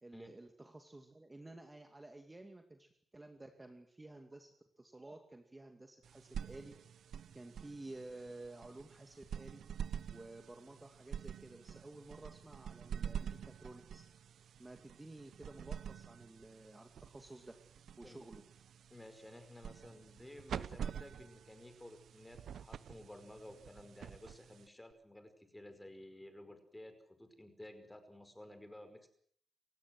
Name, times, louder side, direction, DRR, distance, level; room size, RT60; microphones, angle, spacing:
voice 1, 0.0-6.9 7.3-9.6 10.1-14.0 14.6-17.5 18.0-18.4, right 2 dB, 15° right, 5 dB, 2.5 m, -53 dB
sound 1, 6.0-24.9, right 8 dB, 75° right, 0.9 m, -47 dB
voice 2, 18.9-29.1, left 1 dB, 10° left, 8 dB, 5.1 m, -54 dB
29.0 x 16.0 x 7.8 m, 0.63 s
cardioid pair, 110°, 0 cm